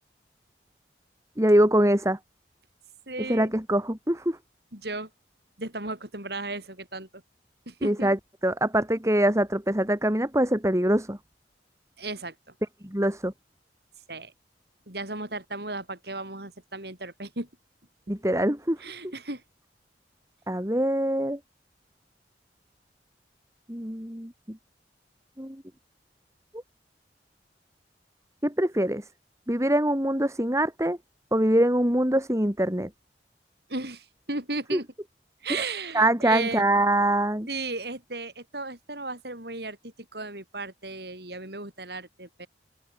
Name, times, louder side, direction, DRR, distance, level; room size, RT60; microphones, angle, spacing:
voice 1, 1.4-2.2 3.3-4.4 7.8-8.2 8.4-11.2 12.8-13.3 18.1-18.8 20.5-21.4 23.7-24.6 25.4-25.6 28.4-29.0 29.5-31.0 31.3-32.9 34.7-34.8 35.5-35.6 35.9-37.5, right 1 dB, 15° right, 3.2 m, -23 dB
voice 2, 3.1-3.5 4.7-5.1 5.6-7.2 7.7-8.1 12.0-12.3 14.1-14.3 14.9-17.5 18.1-18.2 18.8-19.4 33.7-34.9 35.4-36.6 37.5-42.5, right 2 dB, 60° right, 7.6 m, -35 dB
head